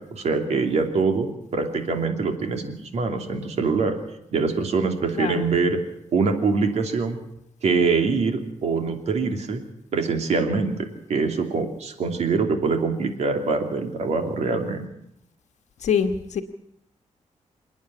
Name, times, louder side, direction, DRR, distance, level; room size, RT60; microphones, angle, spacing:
voice 1, 0.1-3.9 4.3-5.8 6.1-7.2 7.6-9.6 9.9-10.8 11.1-14.9, right 4 dB, 65° right, 5 dB, 2.9 m, -24 dB
voice 2, 5.1-5.5 15.8-16.4, left 7 dB, 75° left, 6 dB, 1.3 m, -24 dB
28.0 x 9.6 x 10.0 m, 0.79 s
wide cardioid pair, 175°, 12 cm